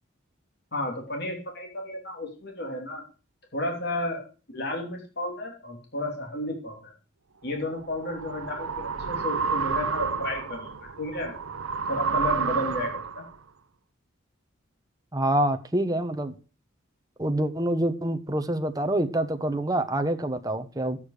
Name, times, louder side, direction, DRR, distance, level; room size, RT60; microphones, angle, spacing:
voice 1, 0.7-3.0 3.5-4.2 4.5-6.9 7.4-11.3 11.9-13.2, left 1 dB, 50° left, 3.1 m, -32 dB
sound 1, 7.6-13.3, right 5 dB, 85° right, 0.8 m, -30 dB
voice 2, 15.1-16.3 17.2-21.0, right 1 dB, 20° right, 1.0 m, -26 dB
12.0 x 8.6 x 4.9 m
head